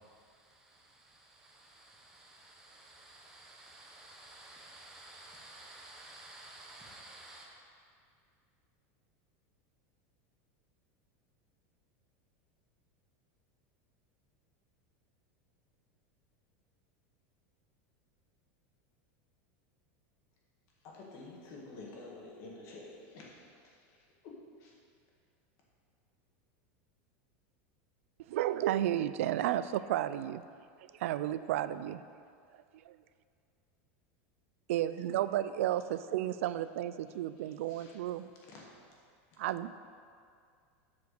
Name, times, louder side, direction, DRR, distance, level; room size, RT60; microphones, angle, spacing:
voice 1, 1.4-7.5, right 2 dB, 5° right, -3 dB, 1.1 m, -53 dB
voice 2, 20.8-22.9 23.1-23.4 24.2-24.3 24.6-24.7 37.7-37.9 38.5-38.6, left 3 dB, 40° left, -3 dB, 1.8 m, -49 dB
voice 3, 28.3-30.4 31.0-32.0 32.9-33.0 34.7-38.3 39.4-39.7, right 12 dB, 85° right, 14 dB, 0.3 m, -32 dB
8.1 x 4.9 x 6.5 m, 2.2 s
supercardioid pair, 170°, 7 cm